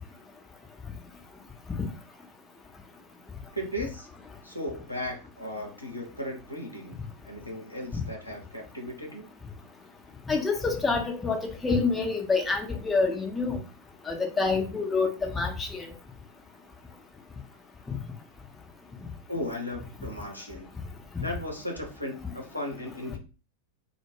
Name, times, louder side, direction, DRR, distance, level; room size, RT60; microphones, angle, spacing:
voice 1, 3.5-4.1 4.4-7.0 7.2-9.3 19.3-20.7 21.2-23.2, left 1 dB, 90° left, 0 dB, 0.7 m, -36 dB
voice 2, 10.3-13.6 14.1-15.9 21.2-21.3, left 4 dB, 15° left, 3 dB, 0.5 m, -27 dB
2.1 x 2.1 x 3.1 m, 0.33 s
figure-of-eight pair, 90°, 0 cm